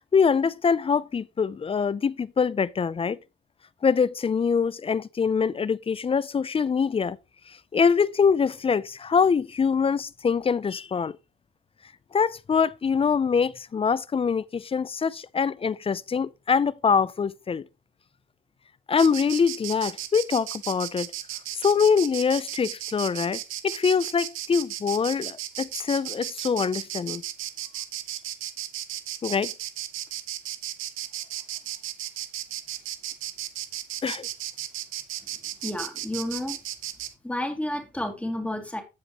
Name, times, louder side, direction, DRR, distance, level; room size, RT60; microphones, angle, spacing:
voice 1, 0.1-3.2 3.8-7.2 7.7-11.2 12.1-17.6 18.9-21.1 21.6-27.2 29.2-29.5 34.0-34.3, left 6 dB, 30° left, 0.5 m, -24 dB
Insect, 19.0-37.1, right 13 dB, 90° right, 1.0 m, -35 dB
voice 2, 35.6-36.6 37.2-38.8, left 1 dB, 5° left, 2.5 m, -31 dB
15.0 x 5.2 x 3.0 m
cardioid pair, 90°, 20 cm